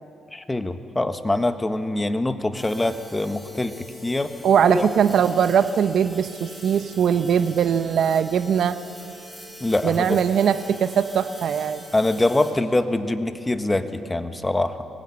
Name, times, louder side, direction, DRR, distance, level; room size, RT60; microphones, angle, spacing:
voice 1, 0.3-4.3 4.7-4.9 9.6-10.2 11.9-14.8, left 2 dB, 15° left, 8 dB, 1.5 m, -24 dB
sound 1, 2.5-12.5, equal, 5° right, 7.5 m, -43 dB
voice 2, 4.4-8.8 9.8-11.8, right 8 dB, 65° right, 11 dB, 1.0 m, -20 dB
24.0 x 20.5 x 9.8 m, 2.7 s
cardioid pair, 90°, 0 cm